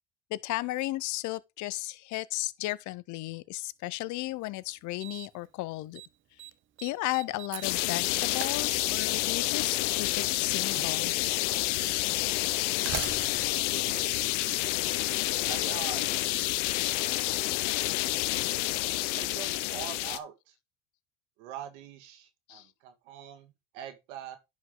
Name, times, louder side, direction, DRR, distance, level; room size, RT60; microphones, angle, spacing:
voice 1, 0.3-6.0 6.8-11.1 22.5-22.7, left 18 dB, 55° left, 0.7 m, -34 dB
Slam, 4.2-4.3 5.0-5.5 5.7-6.1 6.4-9.3 10.4-10.5 11.4-11.5 12.5-14.8, right 11 dB, 35° right, 0.7 m, -42 dB
sound 1, 7.6-20.2, left 17 dB, 80° left, 0.9 m, -29 dB
voice 2, 13.7-14.1 15.5-16.4 19.1-20.5 21.4-24.4, right 10 dB, 80° right, 1.9 m, -43 dB
10.5 x 5.3 x 3.8 m
supercardioid pair, 110°, 35 cm